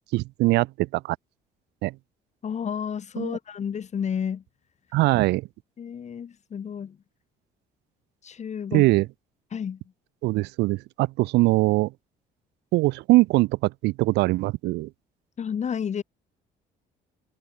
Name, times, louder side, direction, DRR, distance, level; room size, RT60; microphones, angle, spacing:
voice 1, 0.1-1.2 1.8-1.9 3.2-3.4 4.9-5.5 8.7-9.1 10.2-11.9 12.7-14.9, right 20 dB, 85° right, 0.9 m, -22 dB
voice 2, 2.4-4.4 5.8-7.0 8.2-8.9 9.5-9.8 15.4-16.0, left 7 dB, 40° left, 6.9 m, -31 dB
cardioid pair, 110°, 17 cm